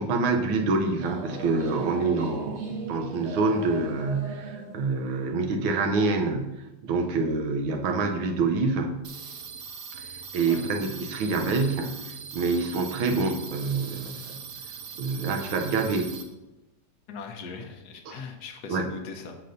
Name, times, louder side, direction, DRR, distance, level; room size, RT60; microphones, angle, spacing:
voice 1, 0.0-9.1 10.0-14.4 15.0-16.1 18.1-18.2 18.7-18.9, right 3 dB, 75° right, 4 dB, 1.5 m, -27 dB
sound 1, 1.0-6.1, right 2 dB, 40° right, 1.2 m, -37 dB
sound 2, 9.0-16.2, right 6 dB, 60° right, 1.1 m, -41 dB
voice 2, 17.1-19.4, left 4 dB, 65° left, 4 dB, 1.1 m, -40 dB
13.5 x 5.1 x 2.6 m, 1.0 s
omnidirectional pair, 2.3 m